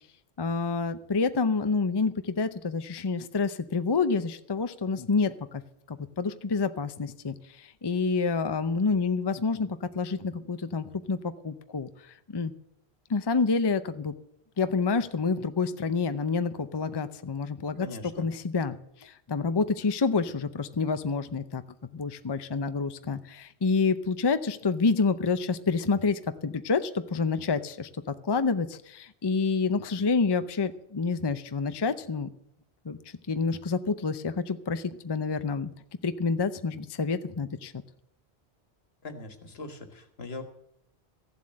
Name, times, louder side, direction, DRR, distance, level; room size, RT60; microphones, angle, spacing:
voice 1, 0.4-5.6 5.9-11.9 12.3-12.5 13.1-14.1 14.6-17.9 18.1-21.6 21.9-32.3 32.8-33.0 33.3-35.7 36.0-37.7, left 4 dB, 30° left, 11 dB, 0.6 m, -28 dB
voice 2, 17.8-18.3 39.0-40.4, left 2 dB, 70° left, 7 dB, 1.7 m, -41 dB
15.0 x 7.6 x 8.7 m, 0.75 s
omnidirectional pair, 1.1 m